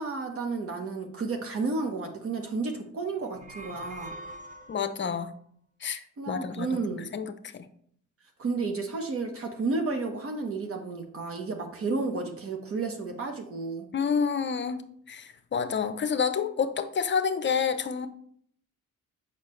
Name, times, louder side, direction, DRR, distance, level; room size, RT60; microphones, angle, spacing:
voice 1, 0.0-4.1 6.2-7.1 8.4-13.9, right 3 dB, 50° right, 3 dB, 1.1 m, -32 dB
sound 1, 3.2-5.1, right 1 dB, 25° right, 0.8 m, -43 dB
voice 2, 4.7-5.3 5.8-6.8 7.1-7.7 13.9-14.8 15.1-18.1, left 6 dB, 40° left, 11 dB, 0.6 m, -29 dB
6.6 x 5.5 x 3.2 m, 0.63 s
cardioid pair, 90°, 30 cm